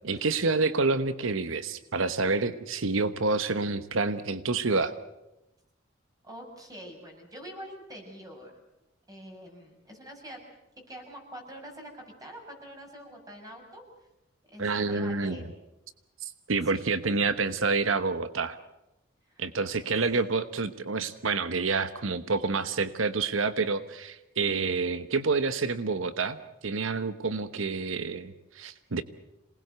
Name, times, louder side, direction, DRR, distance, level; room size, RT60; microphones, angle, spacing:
voice 1, 0.0-4.9 14.6-15.4 16.2-18.6 19.4-29.0, right 4 dB, 90° right, 12 dB, 1.0 m, -28 dB
voice 2, 6.2-8.6 9.1-10.4 10.9-13.8 14.5-15.5 16.7-17.1 19.2-19.5 19.8-20.0, equal, 20° right, 2 dB, 6.8 m, -45 dB
27.0 x 20.0 x 8.0 m, 0.93 s
head